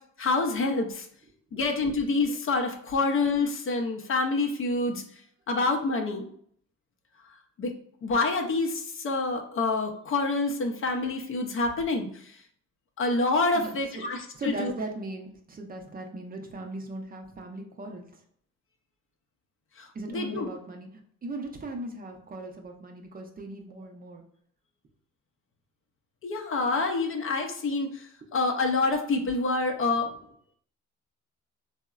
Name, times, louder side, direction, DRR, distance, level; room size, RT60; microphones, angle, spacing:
voice 1, 0.2-1.1 1.5-5.0 5.5-6.2 7.6-7.7 8.0-12.4 13.0-14.7 19.8-19.9 20.1-20.5 26.2-30.1, left 3 dB, 45° left, 3 dB, 0.5 m, -27 dB
voice 2, 13.5-14.1 14.3-18.1 19.9-20.9 21.2-24.2, right 2 dB, 30° right, 2 dB, 0.5 m, -38 dB
3.6 x 2.0 x 2.3 m, 0.64 s
cardioid pair, 90°, 30 cm